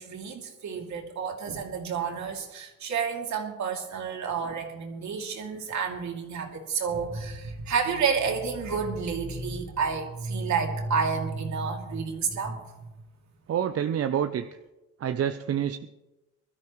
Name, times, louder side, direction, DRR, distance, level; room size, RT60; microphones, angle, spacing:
voice 1, 0.0-12.9, right 5 dB, 65° right, 1 dB, 2.8 m, -30 dB
voice 2, 13.5-14.5 15.0-15.9, right 9 dB, 50° right, 8 dB, 0.7 m, -27 dB
22.0 x 13.0 x 3.2 m, 1.0 s
cardioid pair, 90°, 30 cm